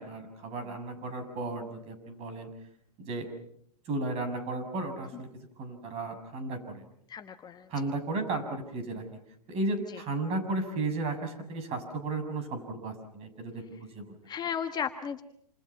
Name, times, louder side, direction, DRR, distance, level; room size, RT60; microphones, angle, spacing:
voice 1, 0.0-2.5 3.0-3.3 3.9-6.8 7.7-9.0 9.5-14.1, right 2 dB, 30° right, 8 dB, 6.8 m, -34 dB
voice 2, 7.1-7.7 9.9-10.0 14.3-15.2, left 8 dB, 20° left, 8 dB, 1.2 m, -35 dB
28.5 x 28.0 x 5.9 m, 0.70 s
hypercardioid pair, 115°, 20 cm